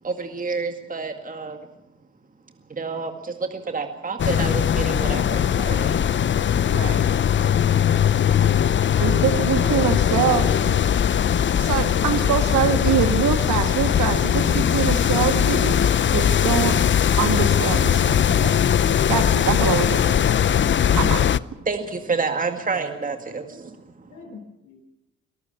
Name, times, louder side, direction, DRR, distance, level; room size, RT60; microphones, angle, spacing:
voice 1, 0.0-1.7 2.7-6.0 21.7-23.8, right 4 dB, 25° right, 6 dB, 2.0 m, -29 dB
sound 1, 4.2-21.4, left 9 dB, 40° left, 0.6 m, -20 dB
voice 2, 6.7-7.0 9.0-10.7 11.6-16.8 17.2-18.5 19.1-20.2 21.0-21.2, right 9 dB, 75° right, 8 dB, 1.8 m, -24 dB
voice 3, 11.4-13.4 23.3-23.4 24.1-24.8, left 4 dB, 75° left, 2 dB, 7.6 m, -42 dB
23.0 x 14.0 x 8.7 m, 0.97 s
cardioid pair, 90°, 30 cm